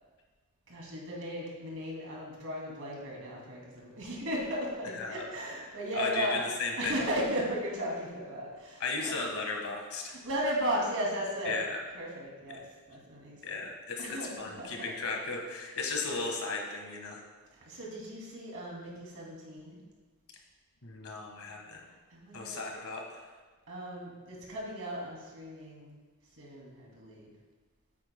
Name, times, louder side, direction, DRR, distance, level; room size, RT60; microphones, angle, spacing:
voice 1, 0.7-6.4 6.8-9.2 10.1-11.6 11.9-13.6 14.0-14.8 15.5-15.7 17.5-19.8 22.1-22.6 23.7-26.0 26.4-27.3, equal, 65° right, -3 dB, 2.7 m, -36 dB
voice 2, 5.9-7.0 8.8-10.2 11.5-11.8 12.5-12.6 13.4-17.2 20.8-21.9 22.3-23.3, left 3 dB, 70° left, 1 dB, 1.7 m, -36 dB
13.5 x 8.5 x 2.3 m, 1.3 s
head